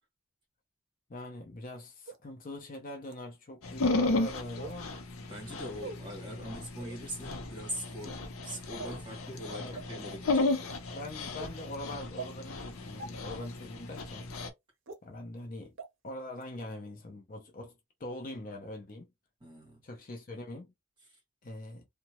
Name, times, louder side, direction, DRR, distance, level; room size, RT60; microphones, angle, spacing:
voice 1, 1.1-5.0 9.4-9.9 10.9-14.3 15.0-15.8 16.0-17.7 18.0-19.1 19.8-20.7 21.4-21.8, left 1 dB, 40° left, 0.5 m, -43 dB
sound 1, 2.1-2.2 3.1-3.2 4.6-4.8 5.8-6.0 6.8-7.0 7.9-8.2 8.8-9.0 9.7-9.8 10.5-10.7 11.4-11.5 12.2-12.3 13.0-13.1 13.9-14.0 14.9-15.0 15.8-15.9 16.4-16.5, right 4 dB, 60° right, 0.6 m, -42 dB
Dog, 3.6-14.5, left 2 dB, 80° left, 0.7 m, -34 dB
voice 2, 5.2-10.7 19.4-19.8 21.0-21.2, equal, 20° right, 1.4 m, -42 dB
2.7 x 2.2 x 2.9 m
head